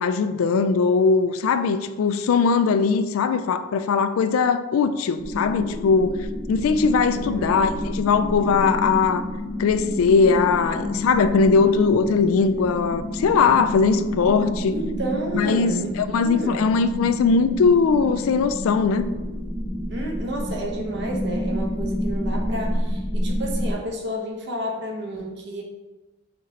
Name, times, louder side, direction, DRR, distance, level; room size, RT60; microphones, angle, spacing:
voice 1, 0.0-9.3 9.6-14.7 15.3-19.1, left 5 dB, 85° left, 0.3 m, -20 dB
sound 1, 5.2-23.7, left 1 dB, 5° right, 1.1 m, -29 dB
voice 2, 7.1-7.7 14.7-16.7 19.9-25.6, right 1 dB, 55° right, 0.8 m, -31 dB
5.9 x 3.1 x 2.8 m
head